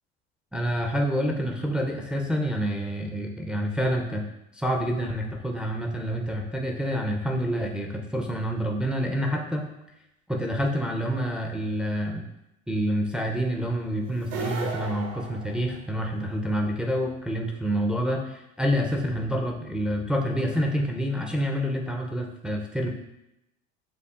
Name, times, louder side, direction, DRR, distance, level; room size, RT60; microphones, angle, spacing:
voice 1, 0.5-4.2 4.5-9.6 10.3-12.2 12.7-22.9, equal, 5° right, 1 dB, 0.4 m, -27 dB
sound 1, 14.2-16.2, right 4 dB, 70° right, 0.8 m, -35 dB
6.8 x 2.4 x 2.3 m, 0.87 s
hypercardioid pair, 75°, 39 cm